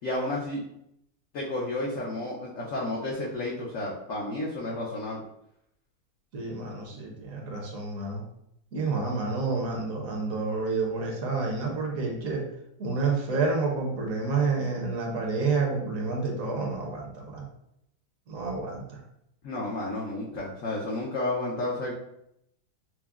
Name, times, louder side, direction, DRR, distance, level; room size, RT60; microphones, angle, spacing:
voice 1, 0.0-0.6 1.3-5.2 19.4-21.9, left 2 dB, 65° left, -4 dB, 0.9 m, -31 dB
voice 2, 6.3-8.2 8.7-12.4 12.8-17.5 18.3-19.0, right 4 dB, 60° right, -1 dB, 1.1 m, -29 dB
5.9 x 2.0 x 2.4 m, 0.78 s
omnidirectional pair, 1.8 m